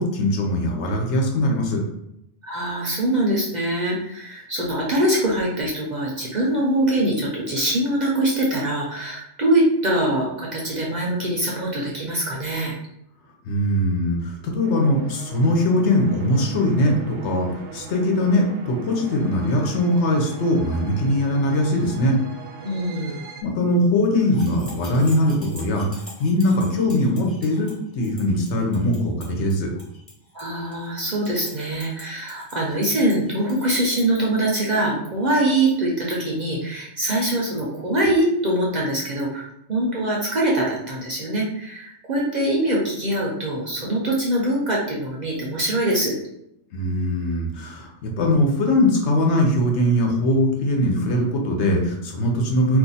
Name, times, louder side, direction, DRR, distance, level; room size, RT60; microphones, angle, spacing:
voice 1, 0.0-1.8 13.4-22.2 23.4-29.7 46.7-52.8, left 1 dB, 70° left, 0 dB, 1.0 m, -21 dB
voice 2, 2.4-12.8 22.6-23.2 30.3-46.1, right 1 dB, 45° right, -4 dB, 0.6 m, -23 dB
sound 1, 14.6-23.4, right 5 dB, 75° right, 0.9 m, -40 dB
sound 2, 24.2-34.0, left 1 dB, 15° left, 0.8 m, -45 dB
2.5 x 2.4 x 4.0 m, 0.80 s
omnidirectional pair, 1.2 m